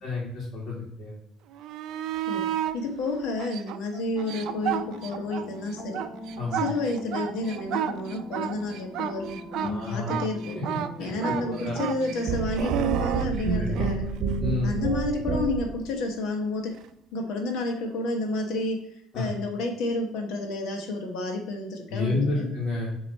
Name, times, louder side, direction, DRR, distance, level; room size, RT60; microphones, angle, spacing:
voice 1, 0.0-1.1 6.4-6.6 9.6-10.1 10.5-10.6 11.0-11.8 13.6-13.8 14.4-14.8 19.1-19.3 21.9-22.9, left 3 dB, 45° left, -6 dB, 2.0 m, -30 dB
sound 1, 1.5-2.8 3.4-5.5 5.8-14.0 16.7-16.9, right 10 dB, 65° right, 0.4 m, -31 dB
voice 2, 2.7-6.0 6.5-10.6 11.0-14.0 14.6-16.8 17.1-22.5, left 2 dB, 70° left, 3 dB, 1.4 m, -30 dB
sound 2, 4.1-13.2, equal, 20° left, 2.3 m, -42 dB
sound 3, 12.3-15.8, right 4 dB, 50° right, 1.0 m, -28 dB
7.6 x 3.1 x 4.2 m, 0.76 s
cardioid pair, 135°, 0 cm